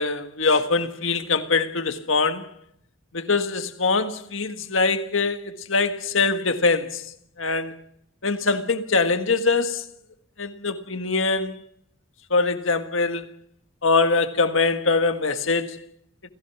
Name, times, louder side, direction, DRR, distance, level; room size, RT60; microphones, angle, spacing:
voice 1, 0.0-2.5 3.1-7.0 7.4-7.8 8.2-9.9 10.4-11.5 12.3-13.3 13.8-15.8, left 4 dB, 70° left, 1.7 m, -23 dB
28.5 x 16.5 x 6.0 m
head